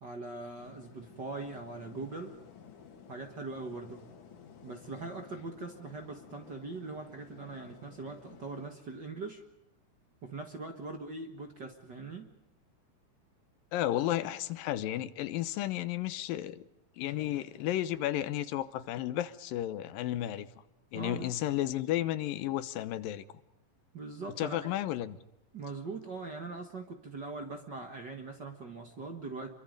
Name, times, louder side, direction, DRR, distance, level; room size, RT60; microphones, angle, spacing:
voice 1, 0.0-2.4 3.1-4.0 4.6-9.4 10.2-12.3 20.9-21.3 23.9-24.7 25.5-29.5, right 3 dB, 45° right, 1.6 m, -41 dB
sound 1, 0.6-8.7, left 7 dB, 65° left, 3.2 m, -54 dB
voice 2, 13.7-16.6 17.0-20.5 20.9-23.2 24.4-25.2, left 13 dB, 85° left, 2.6 m, -33 dB
28.0 x 23.0 x 5.3 m
omnidirectional pair, 4.0 m